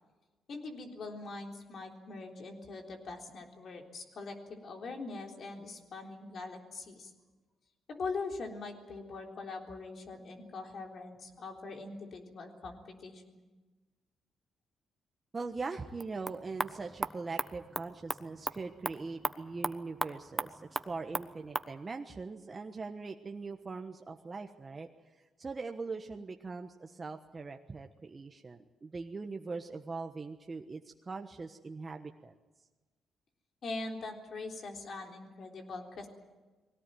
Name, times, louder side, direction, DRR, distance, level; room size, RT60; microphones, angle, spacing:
voice 1, 0.5-7.1 7.9-13.4 33.6-36.1, left 3 dB, 60° left, 2 dB, 3.7 m, -42 dB
voice 2, 15.3-32.3, right 4 dB, 35° right, 4 dB, 1.2 m, -41 dB
sound 1, 15.9-21.7, right 1 dB, 10° right, 1.2 m, -38 dB
21.0 x 18.0 x 9.3 m, 1.2 s
supercardioid pair, 60°, 0 cm